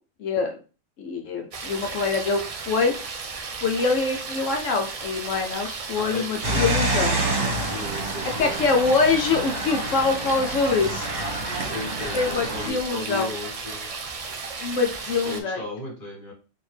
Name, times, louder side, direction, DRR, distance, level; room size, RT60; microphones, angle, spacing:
voice 1, 0.2-0.5 1.0-2.9 3.6-7.2 8.4-11.1 12.1-13.3 14.6-15.6, left 4 dB, 70° left, 3 dB, 0.9 m, -24 dB
sound 1, 1.5-15.4, right 4 dB, 70° right, 0.3 m, -35 dB
voice 2, 6.0-6.6 6.9-8.7 11.6-13.9 15.2-16.3, left 1 dB, 40° left, -5 dB, 1.8 m, -36 dB
sound 2, 6.4-12.7, right 1 dB, 45° right, 1.3 m, -28 dB
4.4 x 2.8 x 3.2 m, 0.35 s
omnidirectional pair, 1.5 m